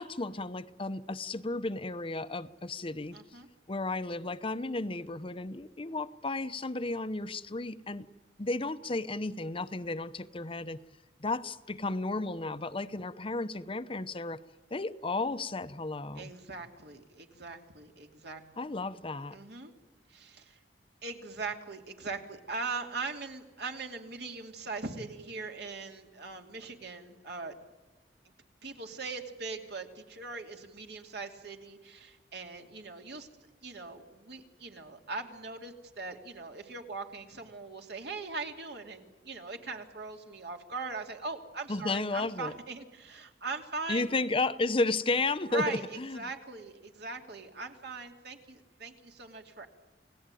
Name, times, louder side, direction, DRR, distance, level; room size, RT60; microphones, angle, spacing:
voice 1, 0.0-3.2 3.7-8.1 8.4-10.8 11.2-14.4 14.7-16.3 18.6-19.4 41.7-42.5 43.9-46.2, left 2 dB, 30° left, 12 dB, 0.8 m, -33 dB
voice 2, 3.1-3.5 16.1-18.7 19.3-19.7 20.1-20.6 21.0-27.5 28.6-33.3 33.6-44.1 45.5-49.7, right 3 dB, 65° right, 4 dB, 3.0 m, -40 dB
29.0 x 18.0 x 9.2 m, 1.2 s
head